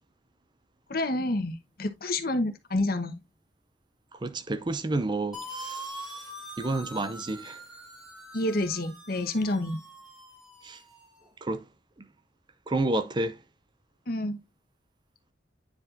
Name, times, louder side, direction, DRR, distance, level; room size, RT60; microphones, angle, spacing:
voice 1, 0.9-3.2 8.3-9.8 14.1-14.4, left 1 dB, 55° left, 1.1 m, -28 dB
voice 2, 4.1-6.3 6.6-7.6 10.6-10.8 11.4-11.6 12.0-12.1 12.7-13.4, right 2 dB, 25° right, 0.5 m, -30 dB
sound 1, 5.3-11.1, right 1 dB, 5° right, 1.7 m, -43 dB
9.4 x 4.7 x 2.6 m
head